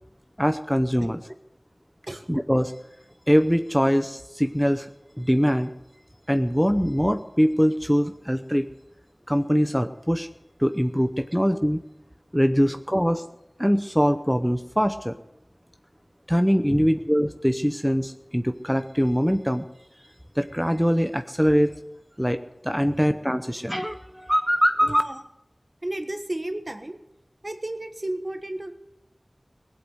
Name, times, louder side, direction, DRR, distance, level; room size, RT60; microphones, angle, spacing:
voice 1, 0.4-1.2 2.3-2.7 3.3-4.9 5.2-5.7 6.3-8.7 9.3-10.3 10.6-11.8 12.3-13.2 13.6-15.2 16.3-19.6 20.4-21.7 22.2-25.0, equal, ahead, 8 dB, 0.7 m, -22 dB
voice 2, 22.8-23.1 24.8-25.2 25.8-27.0 27.4-28.7, right 1 dB, 40° right, 7 dB, 1.5 m, -33 dB
18.5 x 8.3 x 8.0 m, 0.88 s
wide cardioid pair, 50°, 0 cm